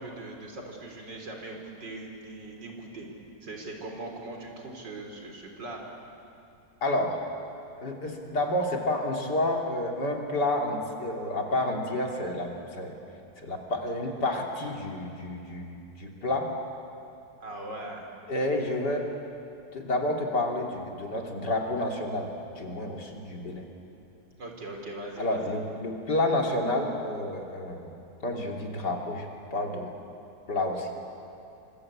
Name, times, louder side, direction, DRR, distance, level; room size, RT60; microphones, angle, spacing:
voice 1, 0.0-3.1 3.4-5.8 17.4-18.1 24.4-25.6, right 2 dB, 65° right, 2 dB, 4.5 m, -40 dB
voice 2, 6.8-7.2 7.8-13.0 13.4-16.5 18.3-19.1 19.7-22.3 22.6-23.6 25.2-27.9 28.2-29.3 29.5-29.9 30.5-30.9, left 1 dB, 60° left, 1 dB, 3.5 m, -29 dB
27.0 x 25.5 x 8.7 m, 2.7 s
omnidirectional pair, 2.0 m